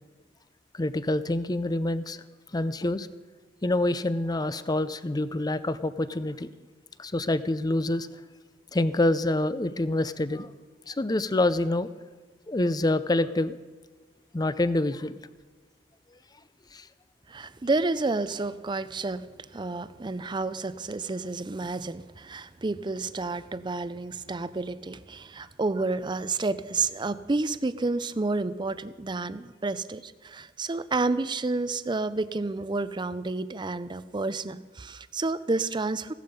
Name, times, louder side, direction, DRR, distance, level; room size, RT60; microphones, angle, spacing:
voice 1, 0.7-2.2 2.5-3.1 3.6-6.5 7.0-8.1 8.7-10.5 10.9-11.9 12.5-13.6 14.3-15.2 16.7-16.8, left 2 dB, 20° left, 14 dB, 0.6 m, -26 dB
voice 2, 17.3-19.3 19.5-36.1, right 3 dB, 25° right, 14 dB, 0.5 m, -30 dB
16.5 x 12.5 x 5.2 m, 1.3 s
head